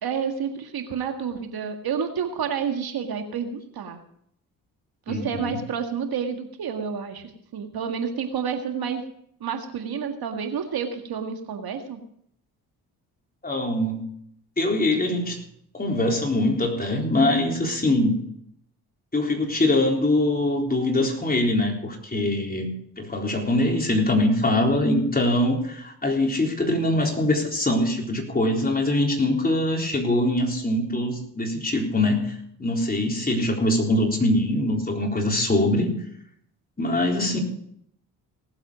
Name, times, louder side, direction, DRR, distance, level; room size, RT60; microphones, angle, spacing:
voice 1, 0.0-4.0 5.1-9.0 9.4-12.0, right 7 dB, 60° right, 5 dB, 1.9 m, -29 dB
voice 2, 5.1-5.6 13.4-14.1 14.6-15.5 15.7-18.2 19.1-22.7 23.0-35.9 36.8-37.4, left 1 dB, 20° left, 1 dB, 3.9 m, -23 dB
18.5 x 8.0 x 5.1 m, 0.68 s
supercardioid pair, 55°, 41 cm